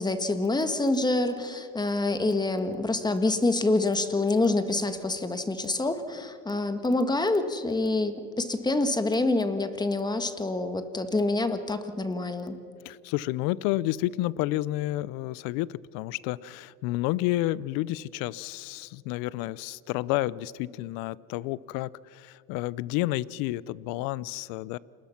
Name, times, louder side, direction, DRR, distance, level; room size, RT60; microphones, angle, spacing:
voice 1, 0.0-12.6, left 2 dB, 10° left, 9 dB, 1.7 m, -26 dB
voice 2, 12.8-24.8, left 16 dB, 65° left, 22 dB, 0.7 m, -30 dB
29.0 x 20.5 x 5.9 m, 2.5 s
supercardioid pair, 110°, 36 cm